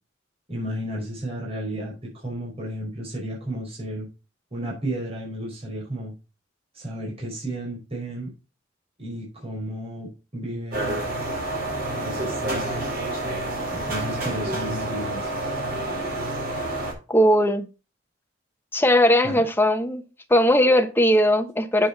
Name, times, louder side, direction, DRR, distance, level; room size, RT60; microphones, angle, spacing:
voice 1, 0.5-4.1 4.5-6.1 6.7-8.3 9.0-11.1 11.9-12.9 13.7-15.3 19.2-19.4, right 1 dB, 35° right, -4 dB, 5.1 m, -33 dB
sound 1, 10.7-16.9, right 2 dB, 55° right, 4.3 m, -28 dB
voice 2, 17.1-17.7 18.7-20.0 20.3-21.9, equal, 10° left, 6 dB, 1.1 m, -19 dB
8.4 x 7.7 x 4.1 m, 0.31 s
head